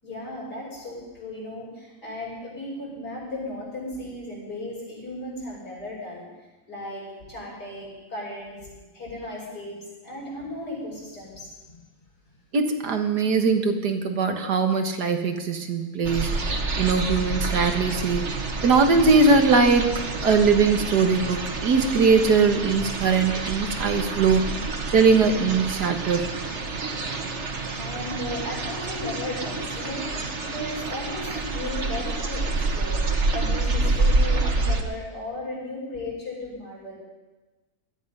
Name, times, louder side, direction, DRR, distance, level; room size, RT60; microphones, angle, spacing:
voice 1, 0.0-6.2 6.7-11.8 27.8-30.3 30.5-33.0 33.3-37.0, left 2 dB, 85° left, -5 dB, 7.3 m, -36 dB
voice 2, 12.5-16.5 16.8-18.4 18.6-19.9 20.2-24.6 24.9-26.4, right 4 dB, 90° right, 6 dB, 2.1 m, -21 dB
sound 1, 16.0-34.8, right 3 dB, 45° right, 1.6 m, -28 dB
19.5 x 13.0 x 5.5 m, 1.2 s
omnidirectional pair, 1.7 m